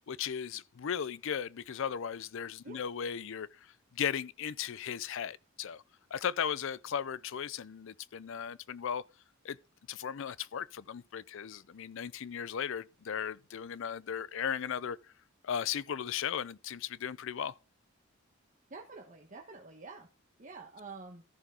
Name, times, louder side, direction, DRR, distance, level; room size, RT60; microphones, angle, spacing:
voice 1, 0.1-3.5 4.0-5.8 6.1-9.0 9.4-9.6 9.9-15.0 15.4-17.5, left 8 dB, 65° left, 0.5 m, -36 dB
voice 2, 18.7-20.1 20.4-21.2, right 3 dB, 40° right, 1.3 m, -47 dB
14.0 x 6.0 x 3.8 m
head